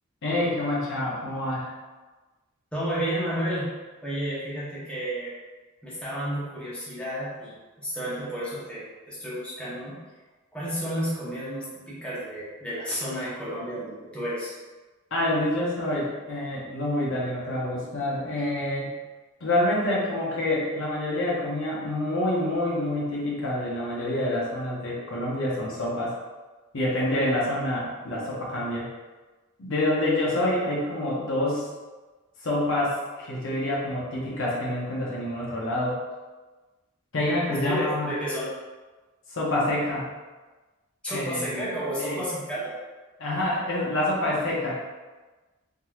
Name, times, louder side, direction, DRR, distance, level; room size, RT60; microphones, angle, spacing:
voice 1, 0.2-1.7 15.1-18.9 19.4-26.1 26.7-28.9 29.6-31.7 32.4-36.0 37.1-38.2 39.3-40.1 41.1-41.6 42.0-42.2 43.2-44.8, left 1 dB, 60° left, -5 dB, 0.8 m, -27 dB
voice 2, 2.7-3.7 4.0-5.3 5.8-7.6 7.8-10.0 10.5-14.5 37.6-38.5 41.0-42.8, equal, 5° left, -10 dB, 0.9 m, -31 dB
3.7 x 2.9 x 2.3 m, 1.2 s
head